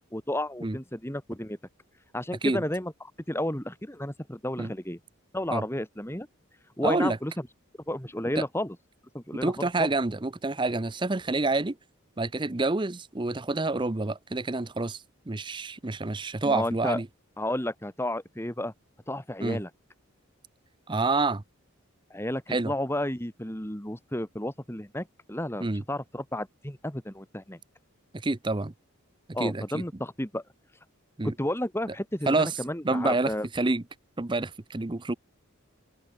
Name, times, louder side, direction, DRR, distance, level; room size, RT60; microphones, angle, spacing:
voice 1, 0.1-1.6 2.1-5.0 5.3-6.3 6.8-7.3 7.9-8.8 9.1-9.9 16.4-17.0 17.4-18.7 19.1-19.7 22.1-27.6 29.3-30.4 31.2-33.5, left 1 dB, 10° left, 2.3 m, -32 dB
voice 2, 6.8-7.2 8.4-8.5 9.4-11.7 12.2-15.0 15.3-17.1 19.4-19.6 20.9-21.4 22.5-22.7 25.6-25.8 28.2-28.7 29.4-29.8 31.2-31.3 32.3-32.5 32.8-33.8 34.2-35.1, right 2 dB, 20° right, 0.7 m, -28 dB
open air
head